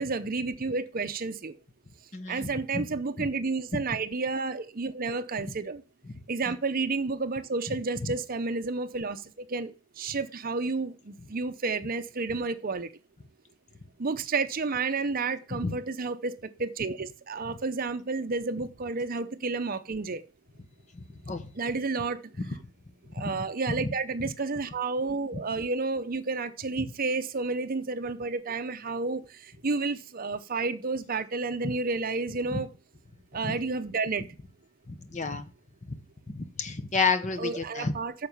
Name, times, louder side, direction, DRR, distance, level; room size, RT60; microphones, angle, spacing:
voice 1, 0.0-1.6 2.3-5.8 6.3-9.7 10.0-12.9 14.0-16.3 16.6-20.2 21.6-22.2 23.1-32.7 33.3-34.2 37.4-38.1, right 3 dB, 45° right, 0.7 m, -31 dB
voice 2, 2.1-2.8 3.2-3.3 3.7-3.8 6.5-6.6 8.0-8.1 15.5-15.8 20.9-21.5 22.5-22.6 23.1-23.4 23.8-23.9 26.8-26.9 31.6-31.7 32.5-32.6 33.4-33.6 34.9-35.5 35.9-36.0 36.3-37.9, left 4 dB, 35° left, 1.0 m, -31 dB
9.5 x 6.6 x 5.5 m
head